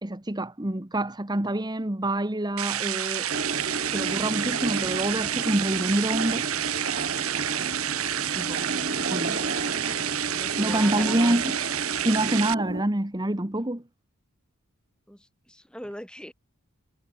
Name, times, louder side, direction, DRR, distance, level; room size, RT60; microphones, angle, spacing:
voice 1, 0.0-3.6 3.9-6.5 8.3-8.7 9.1-9.4 10.6-11.5 12.0-13.8, right 1 dB, 20° right, 1.2 m, -27 dB
sound 1, 2.6-12.5, right 11 dB, 80° right, 1.9 m, -29 dB
sound 2, 3.3-12.8, right 2 dB, 45° right, 2.1 m, -33 dB
voice 2, 10.3-11.4 15.1-16.3, equal, 5° left, 2.2 m, -40 dB
head